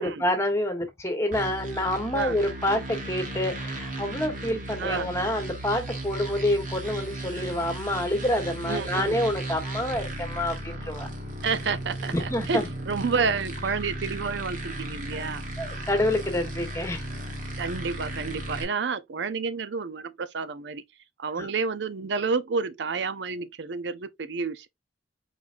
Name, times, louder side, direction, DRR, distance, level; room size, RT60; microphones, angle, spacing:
voice 1, 0.0-11.1 12.1-12.7 15.1-15.3 15.6-17.0 21.4-21.5, left 1 dB, 15° left, 1.2 m, -27 dB
sound 1, 1.3-18.6, right 1 dB, 45° right, 1.4 m, -35 dB
voice 2, 8.7-9.2 11.4-15.4 17.6-20.8 21.2-24.7, right 5 dB, 80° right, 0.5 m, -30 dB
4.6 x 3.9 x 2.5 m
head